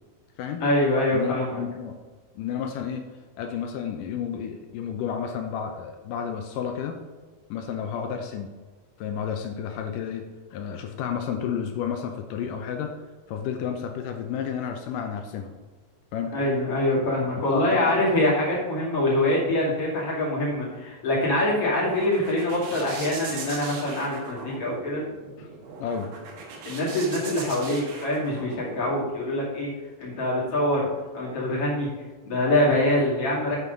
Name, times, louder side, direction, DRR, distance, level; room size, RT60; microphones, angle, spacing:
voice 1, 0.6-1.6 16.3-25.0 26.6-29.7 30.0-30.9 31.1-31.9 32.2-33.6, left 1 dB, 40° left, -5 dB, 3.2 m, -24 dB
voice 2, 1.1-2.0 2.4-3.0 3.4-7.0 7.5-8.5 9.0-12.9 13.3-15.5 16.1-16.4 17.5-18.0 25.4-25.5 25.8-26.1, left 7 dB, 80° left, 5 dB, 2.0 m, -31 dB
sound 1, 21.4-29.1, right 4 dB, 75° right, 3.4 m, -39 dB
8.4 x 7.7 x 3.9 m, 1.4 s
omnidirectional pair, 4.4 m